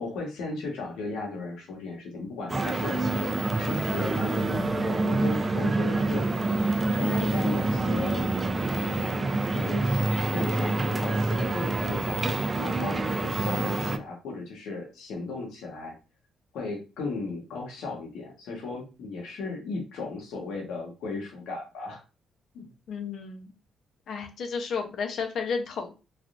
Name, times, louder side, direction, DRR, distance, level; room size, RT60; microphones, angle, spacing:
voice 1, 0.0-3.0 3.5-6.4 7.0-8.3 8.6-10.0 10.3-15.9 16.5-22.0 22.5-22.7, left 3 dB, 85° left, 1 dB, 0.9 m, -36 dB
sound 1, 2.5-14.0, right 3 dB, 25° right, 0.4 m, -27 dB
voice 2, 22.9-23.5 24.1-25.9, left 5 dB, 65° left, 5 dB, 0.7 m, -32 dB
3.3 x 2.4 x 2.5 m, 0.31 s
cardioid pair, 90°, 0 cm